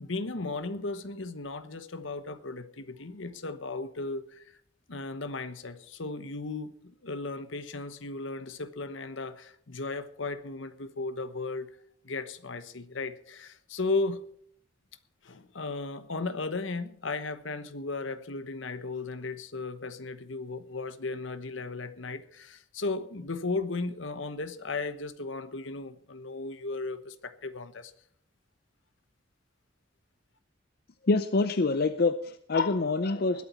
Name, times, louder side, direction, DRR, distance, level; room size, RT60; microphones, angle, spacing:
voice 1, 0.0-4.6 4.9-11.7 12.0-14.2 15.2-27.9, left 3 dB, 70° left, 11 dB, 1.1 m, -35 dB
voice 2, 31.1-33.4, left 3 dB, 50° left, 11 dB, 0.6 m, -26 dB
20.5 x 8.5 x 4.4 m, 0.65 s
head